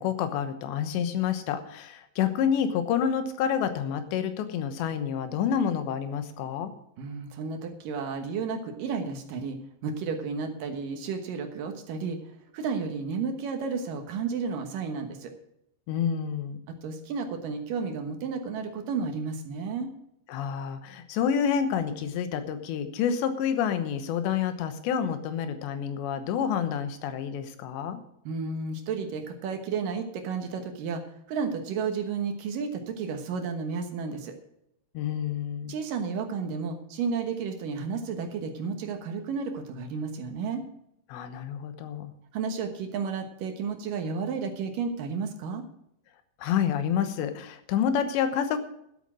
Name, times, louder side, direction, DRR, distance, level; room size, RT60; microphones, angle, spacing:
voice 1, 0.0-6.7 15.9-16.6 20.3-28.0 34.9-35.7 41.1-42.1 46.4-48.6, left 8 dB, 75° left, 10 dB, 3.1 m, -28 dB
voice 2, 7.0-12.2 12.5-15.3 16.8-19.9 28.3-34.4 35.7-40.6 42.3-45.6, right 5 dB, 65° right, 5 dB, 2.2 m, -32 dB
13.0 x 8.2 x 6.2 m, 0.76 s
omnidirectional pair, 5.4 m